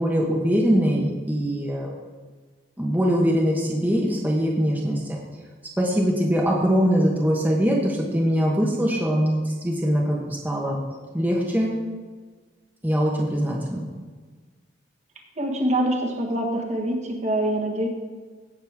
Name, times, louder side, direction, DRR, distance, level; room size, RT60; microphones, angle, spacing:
voice 1, 0.0-1.9 2.8-5.2 5.8-10.8 11.1-11.7 12.8-13.9, equal, 10° right, -3 dB, 1.2 m, -22 dB
voice 2, 15.4-17.9, right 1 dB, 40° right, 1 dB, 1.5 m, -25 dB
17.0 x 6.6 x 3.6 m, 1.4 s
head